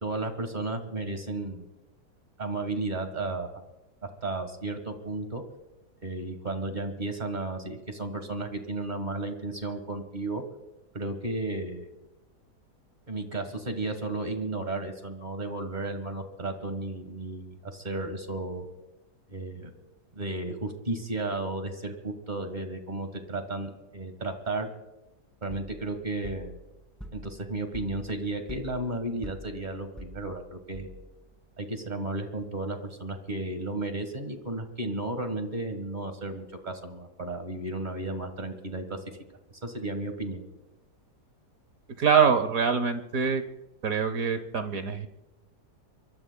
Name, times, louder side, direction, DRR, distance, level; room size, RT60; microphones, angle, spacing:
voice 1, 0.0-1.7 2.4-3.6 4.2-5.4 6.0-10.4 10.9-11.9 13.1-18.7 19.3-19.7 20.1-24.7 25.4-26.6 27.1-30.9 31.6-39.0 39.6-40.4, right 2 dB, 30° right, 6 dB, 1.5 m, -33 dB
sound 1, 25.5-31.3, equal, ahead, 1.9 m, -46 dB
voice 2, 42.0-43.4 43.8-45.1, right 6 dB, 60° right, 9 dB, 1.3 m, -24 dB
25.0 x 23.0 x 2.2 m, 1.0 s
omnidirectional pair, 1.8 m